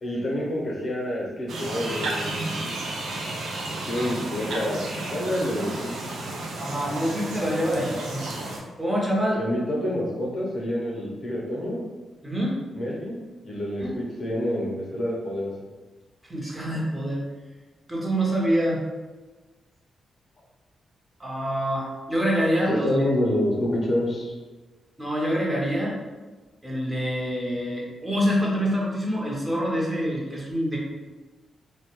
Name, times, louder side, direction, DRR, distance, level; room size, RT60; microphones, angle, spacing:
voice 1, 0.0-2.8 3.9-5.9 9.4-11.8 12.7-13.1 13.4-15.5 16.4-16.5 22.7-24.3, left 1 dB, 50° left, -2 dB, 0.6 m, -28 dB
sound 1, 1.5-8.6, right 2 dB, 85° right, 0.4 m, -32 dB
voice 2, 6.6-8.2 8.8-9.4 12.2-12.6 13.8-14.0 16.3-17.2 17.9-18.8 21.2-23.1 25.0-25.9 26.6-30.8, equal, 15° right, -4 dB, 0.7 m, -26 dB
2.2 x 2.1 x 2.9 m, 1.2 s
cardioid pair, 75°, 0 cm